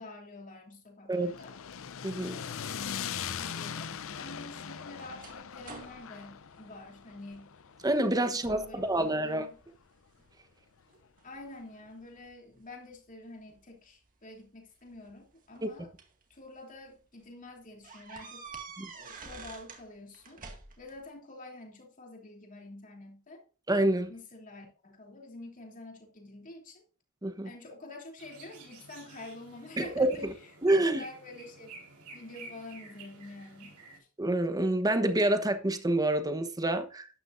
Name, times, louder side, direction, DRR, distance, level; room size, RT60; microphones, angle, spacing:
voice 1, 0.0-1.6 2.2-7.5 8.3-9.5 11.2-15.9 16.3-18.5 18.9-20.4 20.8-23.4 24.1-26.8 27.4-30.3 30.9-31.7 32.1-33.8, left 2 dB, 40° left, 3.1 m, -47 dB
sound 1, 1.1-9.4, left 8 dB, 65° left, 0.6 m, -41 dB
voice 2, 2.0-2.4 7.8-9.5 15.6-15.7 18.8-18.9 23.7-24.1 27.2-27.5 29.8-30.1 30.6-31.0 34.2-37.1, right 1 dB, 15° right, 1.0 m, -27 dB
sound 2, 3.9-7.4 7.8-8.1 8.4-9.1 9.5-10.3 10.9-12.3 13.5-13.6 14.8-16.2 16.7-16.9 17.2-17.3 17.8-19.9 20.1-21.0, right 4 dB, 40° right, 2.0 m, -49 dB
sound 3, 28.2-34.0, right 3 dB, 85° right, 4.4 m, -51 dB
12.0 x 9.8 x 2.6 m
head